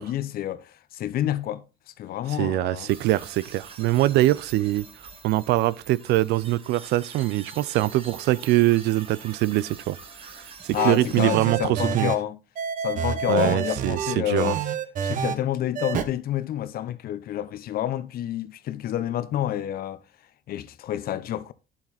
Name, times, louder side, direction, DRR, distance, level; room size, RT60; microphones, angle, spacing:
voice 1, 0.0-2.9 10.7-12.4 12.8-14.6 15.0-20.0 20.5-21.5, left 12 dB, 60° left, 0.8 m, -29 dB
voice 2, 2.4-4.9 5.2-10.0 10.3-12.1 13.3-14.6, right 16 dB, 80° right, 0.5 m, -23 dB
sound 1, 2.9-11.2, right 4 dB, 35° right, 1.8 m, -45 dB
sound 2, 10.7-12.2 12.6-15.3 15.7-16.0, right 7 dB, 50° right, 1.2 m, -28 dB
9.9 x 7.4 x 4.2 m
cardioid pair, 110°, 17 cm